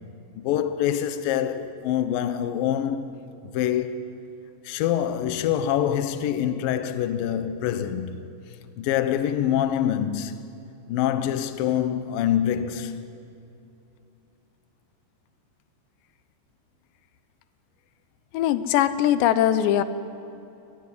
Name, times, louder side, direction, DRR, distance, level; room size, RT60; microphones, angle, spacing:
voice 1, 0.4-3.1 3.5-4.1 4.6-8.4 8.8-10.4 10.9-13.1, left 10 dB, 70° left, 2.5 m, -25 dB
voice 2, 18.3-19.8, left 11 dB, 90° left, 3.1 m, -21 dB
23.5 x 20.0 x 9.8 m
omnidirectional pair, 4.9 m